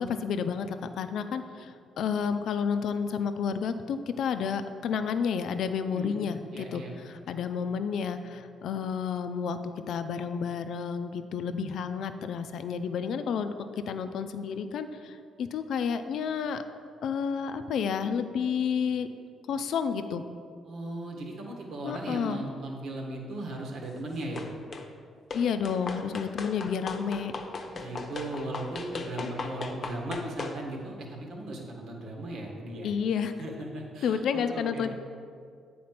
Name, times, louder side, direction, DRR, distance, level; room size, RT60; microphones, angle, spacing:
voice 1, 0.0-9.6 9.9-13.5 13.9-16.6 17.0-19.1 19.5-20.2 21.8-22.4 25.3-27.3 32.8-33.3 34.0-34.9, left 6 dB, 70° left, 10 dB, 0.5 m, -30 dB
voice 2, 6.5-6.9 20.6-24.5 26.8-27.3 27.7-32.9 33.4-34.9, right 1 dB, 70° right, -1 dB, 1.6 m, -37 dB
sound 1, 24.4-24.9 25.3-30.6, left 3 dB, 45° left, 0.7 m, -38 dB
8.6 x 4.3 x 5.9 m, 2.2 s
cardioid pair, 90°, 0 cm